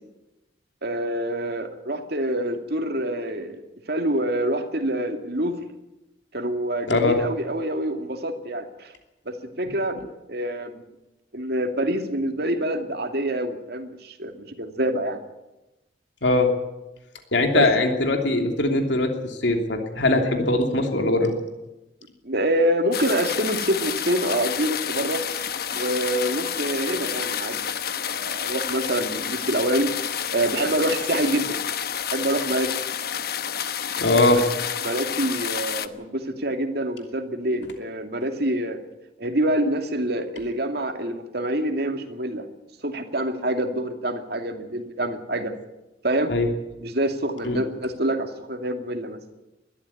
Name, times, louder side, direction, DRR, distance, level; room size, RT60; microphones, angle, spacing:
voice 1, 0.8-3.6 3.9-5.7 6.3-8.9 9.3-10.0 10.3-10.9 11.3-15.2 17.5-17.7 22.2-25.2 25.7-27.7 28.0-29.9 30.3-31.6 32.1-32.8 34.3-34.4 34.8-38.8 39.2-42.5 42.8-45.5 46.0-46.4 46.8-49.2, right 1 dB, 60° right, 5 dB, 2.4 m, -26 dB
voice 2, 6.9-7.2 16.2-16.5 17.3-21.3 34.0-34.4 46.3-46.5 47.4-47.6, left 2 dB, 80° left, 4 dB, 2.9 m, -21 dB
sound 1, 22.9-35.9, left 8 dB, 55° left, 1.0 m, -29 dB
21.0 x 13.5 x 9.8 m, 1.0 s
head